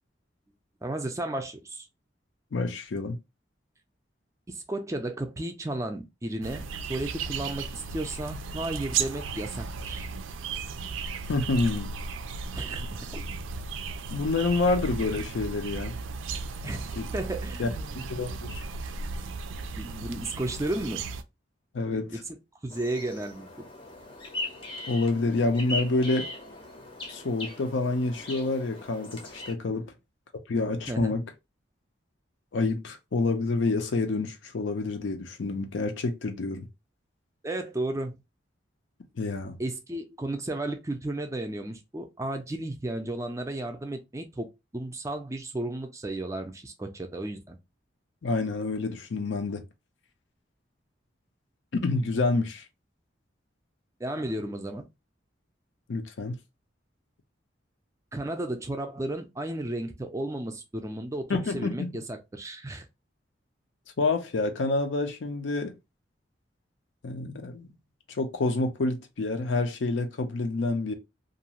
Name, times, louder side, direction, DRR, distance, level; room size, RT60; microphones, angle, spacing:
voice 1, 0.8-1.9 4.5-6.6 6.9-10.0 12.5-13.2 16.6-18.1 19.7-21.0 21.8-22.4 22.6-23.7 29.8-29.9 30.9-31.2 37.4-38.2 39.6-44.5 44.7-47.6 52.0-52.1 54.0-54.9 58.1-62.9, right 1 dB, 15° right, 0.4 m, -34 dB
voice 2, 2.5-3.2 11.3-11.9 14.1-15.9 17.0-17.1 17.6-17.7 18.0-18.6 21.7-22.1 24.9-26.3 27.1-29.9 30.5-31.2 32.5-36.7 39.2-39.6 48.2-49.6 51.7-52.6 55.9-56.4 61.3-61.9 64.0-65.7 67.0-67.7 68.1-70.9, left 3 dB, 75° left, 0.5 m, -28 dB
sound 1, 6.4-21.2, right 4 dB, 90° right, 0.4 m, -35 dB
sound 2, 22.7-29.5, left 2 dB, 30° left, 0.6 m, -39 dB
2.5 x 2.3 x 2.8 m
head